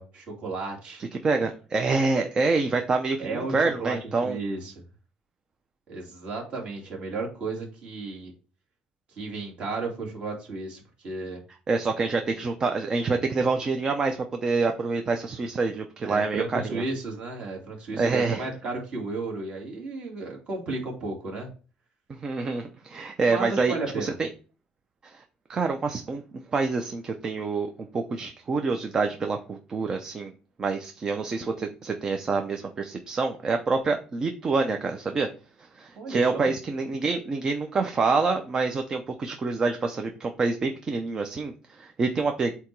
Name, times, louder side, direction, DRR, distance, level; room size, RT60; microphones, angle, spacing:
voice 1, 0.0-1.0 3.2-4.7 5.9-8.3 9.2-11.4 16.0-21.5 23.3-24.1 36.0-36.5, right 3 dB, 45° right, -1 dB, 2.6 m, -33 dB
voice 2, 1.1-4.4 11.7-16.8 18.0-18.5 22.1-24.3 25.0-25.2 25.5-26.2 26.5-30.3 30.6-35.3 35.6-42.5, right 4 dB, 30° right, 5 dB, 0.6 m, -27 dB
8.2 x 2.9 x 4.6 m, 0.35 s
cardioid pair, 150°, 3 cm